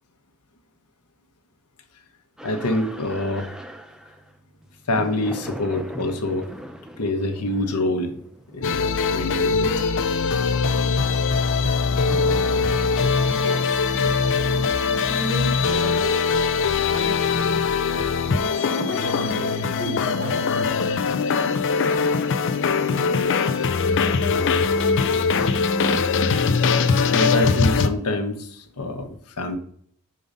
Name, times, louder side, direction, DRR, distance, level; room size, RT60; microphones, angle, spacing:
voice 1, 2.4-3.5 4.9-6.5 7.0-8.1 8.5-9.7 24.3-24.6 27.1-29.6, left 1 dB, 90° left, 7 dB, 0.9 m, -26 dB
sound 1, 2.4-13.3, equal, 5° right, 0.5 m, -40 dB
sound 2, 8.6-27.9, left 5 dB, 60° left, 0.5 m, -21 dB
voice 2, 13.3-13.9 15.1-16.2 16.9-17.7 18.3-20.9, equal, 55° right, 0 dB, 1.9 m, -34 dB
5.3 x 3.8 x 5.1 m, 0.62 s
head